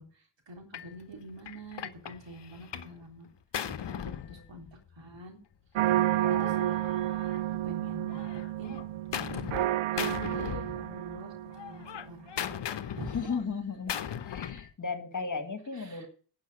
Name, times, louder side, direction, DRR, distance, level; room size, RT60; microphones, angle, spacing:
voice 1, 0.0-3.3 3.6-5.4 6.3-6.8 7.5-8.2 8.6-8.8 9.9-12.6 13.0-13.2 15.7-16.1, right 1 dB, 65° right, 3 dB, 3.5 m, -46 dB
Gunshot gunfire, 0.7-0.9 1.5-3.0 3.2-5.0 5.9-7.7 8.1-9.7 10.0-11.2 11.5-14.7, left 9 dB, 60° left, 1.0 m, -38 dB
voice 2, 4.0-4.4 6.0-6.8 13.1-13.9 14.3-16.1, left 5 dB, 40° left, 9 dB, 1.7 m, -36 dB
sound 1, 5.7-11.9, right 14 dB, 80° right, 0.5 m, -30 dB
10.5 x 5.6 x 7.7 m, 0.41 s
cardioid pair, 55°, 48 cm